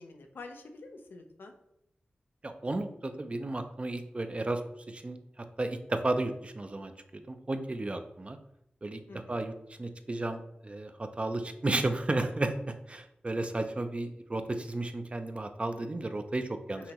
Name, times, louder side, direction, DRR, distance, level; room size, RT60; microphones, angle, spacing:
voice 1, 0.0-1.5 9.1-9.4 16.8-16.9, left 3 dB, 90° left, 4 dB, 0.6 m, -47 dB
voice 2, 2.4-4.6 4.9-8.4 8.8-9.0 9.3-16.9, right 2 dB, 35° right, 7 dB, 0.5 m, -33 dB
5.5 x 3.0 x 2.9 m, 0.81 s
cardioid pair, 55°, 4 cm